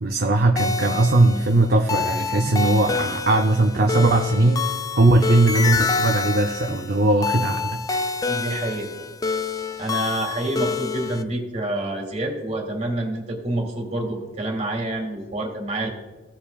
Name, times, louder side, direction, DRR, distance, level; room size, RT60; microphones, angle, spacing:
voice 1, 0.0-4.6 4.9-8.1, right 2 dB, 55° right, 2 dB, 0.6 m, -19 dB
sound 1, 0.6-11.2, left 4 dB, 20° left, 0.3 m, -27 dB
voice 2, 8.3-8.9 9.8-15.9, right 1 dB, 40° right, 2 dB, 2.0 m, -27 dB
16.0 x 7.1 x 2.4 m, 1.2 s
head